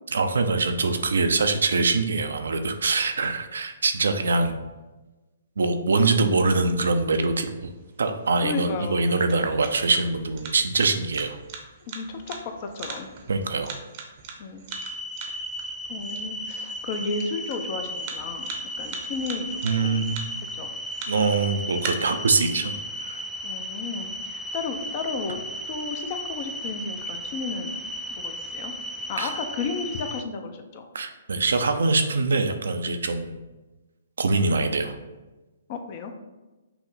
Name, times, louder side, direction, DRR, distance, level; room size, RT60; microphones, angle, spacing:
voice 1, 0.1-4.6 5.6-7.7 8.0-11.4 13.3-13.8 19.6-20.2 21.1-23.2 29.2-29.3 30.9-33.3 34.2-34.9, right 3 dB, 75° right, 7 dB, 0.5 m, -24 dB
sound 1, 7.0-21.9, right 6 dB, 40° right, 0.7 m, -43 dB
voice 2, 8.4-9.0 11.9-13.1 14.4-14.6 15.9-20.0 20.6-20.7 23.4-25.4 25.7-27.8 28.1-28.7 29.1-30.9 35.7-36.1, left 4 dB, 40° left, 5 dB, 0.6 m, -33 dB
sound 2, 14.7-30.2, equal, ahead, 0.3 m, -35 dB
5.7 x 2.1 x 3.9 m, 1.1 s
hypercardioid pair, 135°, 0 cm